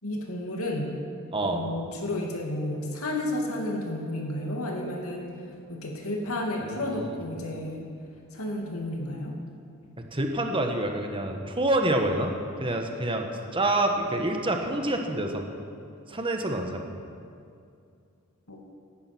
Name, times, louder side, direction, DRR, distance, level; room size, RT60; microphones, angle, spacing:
voice 1, 0.0-1.0 1.4-5.3 5.7-7.9 8.3-9.4 18.5-18.6, left 1 dB, 85° left, 0 dB, 2.6 m, -32 dB
voice 2, 6.6-7.1 10.1-12.3 12.6-13.3 13.5-15.4 16.1-16.9, right 1 dB, 25° right, 3 dB, 1.4 m, -27 dB
18.0 x 11.5 x 6.2 m, 2.4 s
head